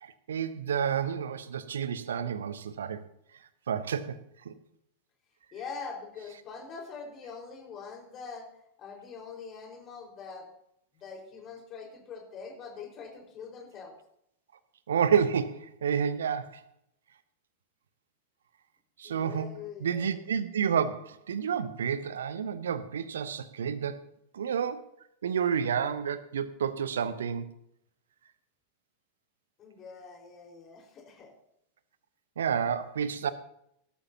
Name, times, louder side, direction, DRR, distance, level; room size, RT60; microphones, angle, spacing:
voice 1, 0.0-3.0 3.7-4.2 4.4-4.5 14.9-16.6 19.0-19.5 19.8-24.0 24.3-24.8 25.2-27.5 32.4-33.3, right 7 dB, 65° right, 14 dB, 1.0 m, -30 dB
voice 2, 5.5-8.5 8.8-10.5 10.9-13.9 19.0-20.2 29.6-31.3, left 5 dB, 30° left, 0 dB, 4.8 m, -43 dB
18.5 x 13.0 x 2.9 m, 0.75 s
figure-of-eight pair, 90°, 0 cm